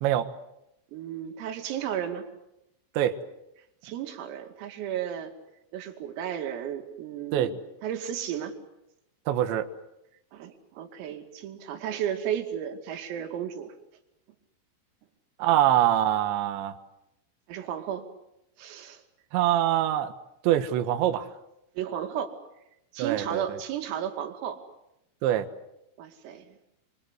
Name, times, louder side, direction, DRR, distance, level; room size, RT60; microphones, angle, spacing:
voice 1, 0.9-2.3 3.8-5.3 5.7-8.5 10.3-13.8 17.5-18.1 18.6-19.0 21.8-22.4 22.9-24.6 26.0-26.6, right 9 dB, 90° right, 5.1 m, -33 dB
voice 2, 9.3-9.7 15.4-16.8 19.3-20.1 20.4-21.3 23.0-23.6 25.2-25.5, right 12 dB, 70° right, 3.5 m, -24 dB
29.5 x 25.0 x 8.1 m
omnidirectional pair, 5.9 m